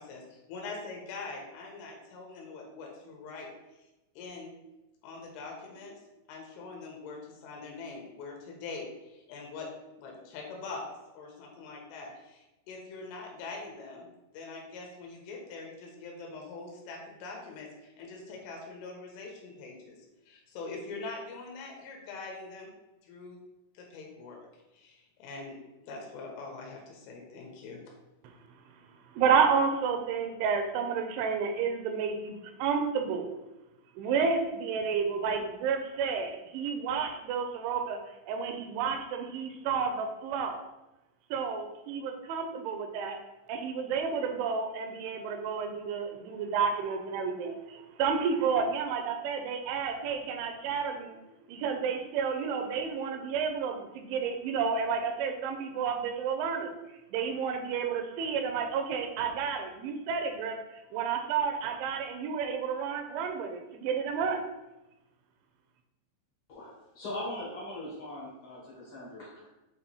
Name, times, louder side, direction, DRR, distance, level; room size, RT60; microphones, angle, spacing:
voice 1, 0.0-3.5 4.2-4.5 5.0-5.9 6.3-9.7 10.0-10.9 11.2-14.1 14.3-20.0 20.3-22.7 23.0-23.4 23.8-24.4 24.7-25.6 25.8-27.8, left 3 dB, 85° left, -1 dB, 3.7 m, -43 dB
voice 2, 29.1-33.3 34.0-38.0 38.3-40.6 41.3-43.2 43.5-51.2 51.5-56.7 57.1-60.6 60.9-64.4, right 6 dB, 80° right, 5 dB, 2.9 m, -30 dB
voice 3, 66.5-69.5, left 1 dB, 60° left, -6 dB, 1.3 m, -40 dB
8.2 x 3.1 x 4.2 m, 0.99 s
omnidirectional pair, 5.6 m